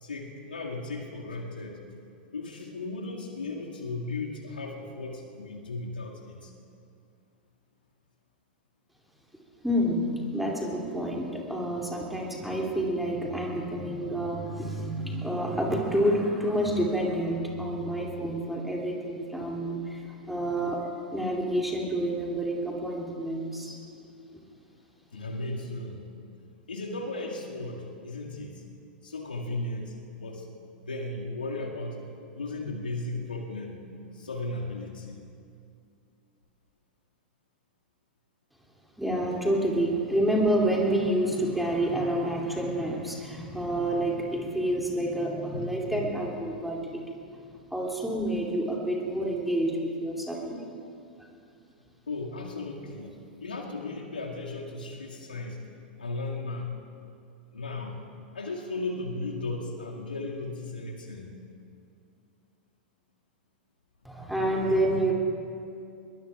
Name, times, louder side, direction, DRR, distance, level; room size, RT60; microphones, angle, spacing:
voice 1, 0.0-1.8 2.3-6.5 25.1-26.1 26.7-28.6 29.0-30.5 30.8-32.1 32.4-33.8 34.1-35.2 45.5-46.0 52.1-55.6 56.0-56.7 57.5-58.0 58.3-61.3, left 2 dB, 75° left, -1 dB, 2.1 m, -36 dB
voice 2, 9.6-20.8 21.1-23.8 39.0-47.0 47.7-50.6 64.0-65.1, right 1 dB, ahead, -2 dB, 2.7 m, -28 dB
22.0 x 21.5 x 2.4 m, 2.5 s
figure-of-eight pair, 95°, 5 cm